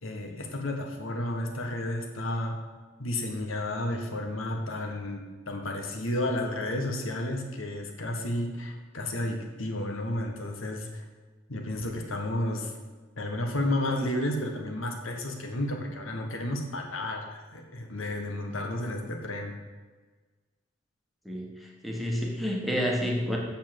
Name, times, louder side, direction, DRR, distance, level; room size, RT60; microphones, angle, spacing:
voice 1, 0.0-2.5 3.0-11.0 11.5-12.7 13.2-19.5, left 1 dB, 80° left, 2 dB, 1.5 m, -32 dB
voice 2, 21.2-23.4, equal, ahead, -2 dB, 1.4 m, -29 dB
7.5 x 7.2 x 7.6 m, 1.4 s
head